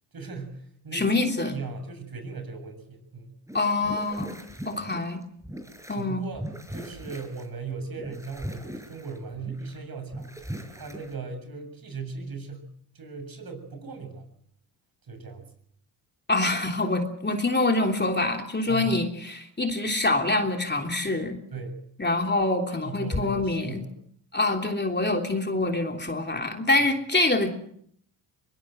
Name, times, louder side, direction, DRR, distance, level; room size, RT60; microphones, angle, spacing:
voice 1, 0.1-3.4 5.9-10.5 10.7-14.2 15.0-15.5 18.7-19.0 21.5-21.8 22.7-23.9, right 4 dB, 45° right, 7 dB, 7.5 m, -38 dB
voice 2, 0.9-1.6 3.5-4.3 4.6-5.2 5.9-6.3 16.3-21.4 22.0-23.8 24.3-27.5, left 2 dB, 20° left, 4 dB, 3.3 m, -25 dB
sound 1, 3.5-6.0 6.3-7.5 7.8-9.8 10.1-11.1, equal, 5° right, 5.6 m, -39 dB
22.5 x 21.0 x 7.9 m, 0.67 s
supercardioid pair, 60°, 47 cm